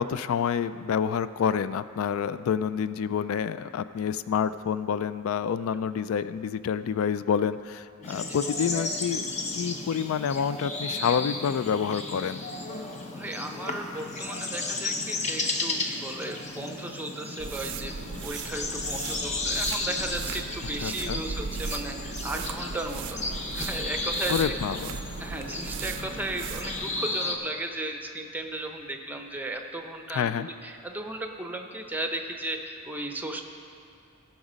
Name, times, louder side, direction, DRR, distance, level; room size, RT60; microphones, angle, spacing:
voice 1, 0.0-12.4 20.8-21.2 24.3-25.0 30.1-30.5, left 7 dB, 70° left, 14 dB, 0.3 m, -28 dB
sound 1, 8.0-27.3, left 2 dB, 35° left, 0.9 m, -34 dB
voice 2, 8.0-8.4 13.1-17.9 18.2-24.6 25.2-33.4, right 1 dB, 10° right, 4 dB, 0.7 m, -35 dB
sound 2, 17.4-27.0, right 5 dB, 60° right, 0.4 m, -37 dB
17.5 x 6.1 x 5.1 m, 2.4 s
head